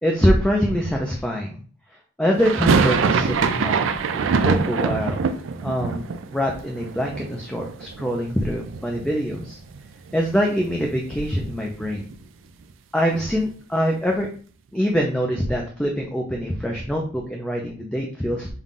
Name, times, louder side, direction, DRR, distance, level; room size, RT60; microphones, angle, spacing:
voice 1, 0.0-1.6 2.2-5.2 5.6-9.6 10.1-12.0 12.9-14.3 14.7-18.5, equal, 5° left, 0 dB, 0.5 m, -24 dB
sound 1, 2.4-8.3 8.6-9.4 9.7-9.8 10.1-12.2, right 5 dB, 85° right, 0.4 m, -24 dB
5.6 x 2.4 x 3.7 m, 0.42 s
head